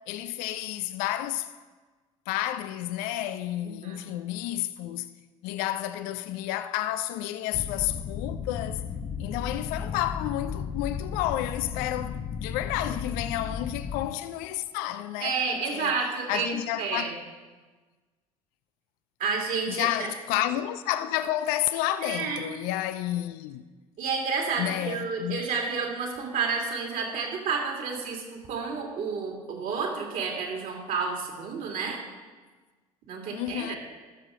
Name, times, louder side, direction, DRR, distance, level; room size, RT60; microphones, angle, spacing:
voice 1, 0.1-1.5 2.3-5.1 5.4-8.8 9.2-15.9 16.3-17.1 19.7-23.6 24.6-25.5 33.3-33.8, left 13 dB, 50° left, 0.5 m, -31 dB
voice 2, 3.6-4.1 15.2-17.1 19.2-20.1 22.0-22.4 24.0-32.0 33.1-33.8, right 5 dB, 45° right, 2.6 m, -30 dB
sound 1, 7.5-14.1, left 7 dB, 35° left, 0.9 m, -34 dB
21.5 x 7.3 x 3.8 m
figure-of-eight pair, 60°, 19 cm